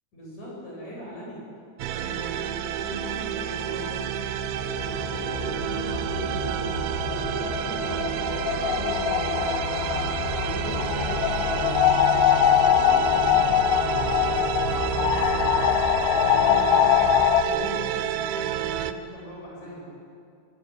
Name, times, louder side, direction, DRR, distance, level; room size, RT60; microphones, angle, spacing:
voice 1, 0.1-1.5 1.9-4.1 4.5-9.7 10.2-15.5 16.0-19.9, equal, 35° left, -4 dB, 9.1 m, -40 dB
sound 1, 1.8-18.9, right 10 dB, 80° right, 2.2 m, -29 dB
sound 2, 4.2-17.4, left 10 dB, 80° left, 2.2 m, -24 dB
22.5 x 20.5 x 9.7 m, 2.5 s
omnidirectional pair, 5.6 m